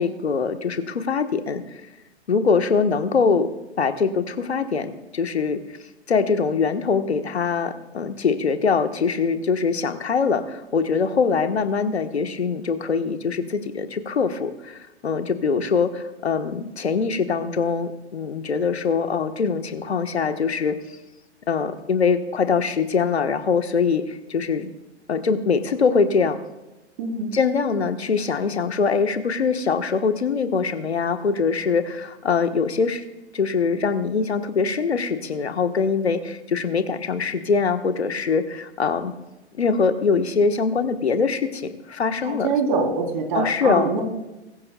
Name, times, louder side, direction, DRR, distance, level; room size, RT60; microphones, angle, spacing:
voice 1, 0.0-1.8 2.3-3.5 3.8-5.6 6.1-20.8 21.5-24.7 25.1-26.4 27.3-33.0 33.3-39.1 39.6-42.5 43.3-43.9, left 5 dB, 70° left, 9 dB, 1.2 m, -23 dB
voice 2, 27.0-27.4 42.2-44.0, right 4 dB, 45° right, 2 dB, 3.3 m, -24 dB
21.5 x 14.5 x 2.3 m, 1.0 s
figure-of-eight pair, 105°, 34 cm